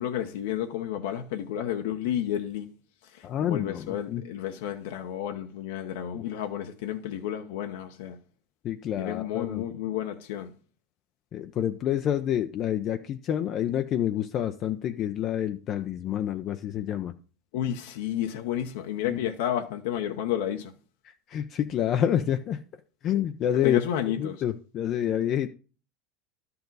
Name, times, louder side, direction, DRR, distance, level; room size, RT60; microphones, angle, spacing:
voice 1, 0.0-2.7 3.1-8.2 9.0-10.5 17.5-20.7 23.6-24.4, left 10 dB, 75° left, 1.0 m, -31 dB
voice 2, 3.2-4.2 6.1-6.2 8.6-9.6 11.3-17.1 19.1-19.2 21.0-22.6 23.0-23.8 24.1-25.5, left 10 dB, 35° left, 0.5 m, -28 dB
12.0 x 6.9 x 4.0 m
supercardioid pair, 155°, 0 cm